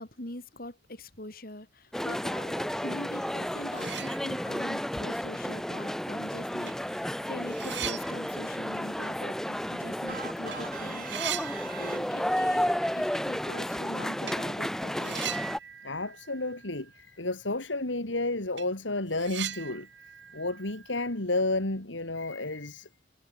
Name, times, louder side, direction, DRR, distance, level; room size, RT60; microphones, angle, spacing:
voice 1, 0.0-11.3 11.8-15.3, left 1 dB, 50° left, 4.1 m, -43 dB
sound 1, 1.9-15.6, equal, 5° left, 0.3 m, -32 dB
sound 2, 3.7-4.7 5.1-5.2 6.2-6.3 6.7-10.1 10.4-10.6 10.8-12.4 12.7-12.8 14.2-14.5 15.0-17.1 17.4-17.5 18.0-18.1 18.4-21.6, right 10 dB, 70° right, 2.6 m, -40 dB
sound 3, 10.1-12.5, right 6 dB, 45° right, 4.4 m, -42 dB
voice 2, 15.8-19.9 20.3-22.9, left 2 dB, 85° left, 2.9 m, -31 dB
head